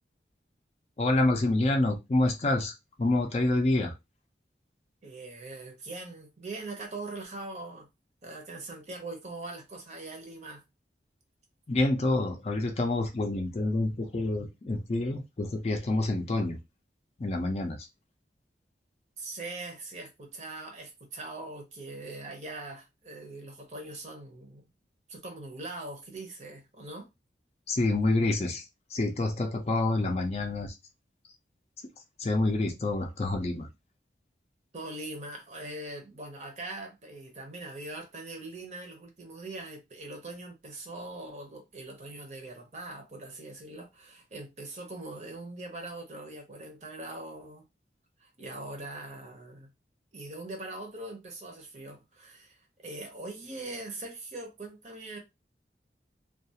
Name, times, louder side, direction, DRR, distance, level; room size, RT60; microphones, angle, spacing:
voice 1, 1.0-2.7 3.0-3.9 11.7-16.6 17.2-17.8 27.7-28.7 28.9-30.7 32.2-33.7, left 2 dB, 35° left, 0.4 m, -27 dB
voice 2, 5.0-7.9 8.2-10.6 19.2-24.6 25.1-27.1 34.7-47.6 48.2-49.7 50.1-55.2, right 2 dB, 40° right, 0.7 m, -42 dB
2.3 x 2.3 x 2.7 m
head